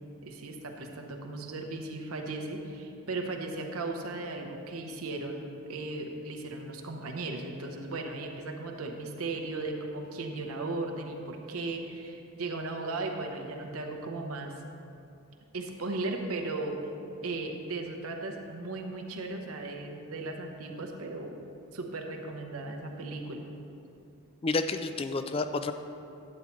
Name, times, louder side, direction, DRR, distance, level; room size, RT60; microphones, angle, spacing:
voice 1, 0.2-14.6 15.5-16.9 17.2-21.4 21.7-23.5, right 2 dB, 85° right, 3 dB, 0.9 m, -36 dB
voice 2, 24.4-25.7, left 3 dB, 25° left, 9 dB, 0.3 m, -30 dB
11.5 x 8.2 x 3.1 m, 2.6 s
head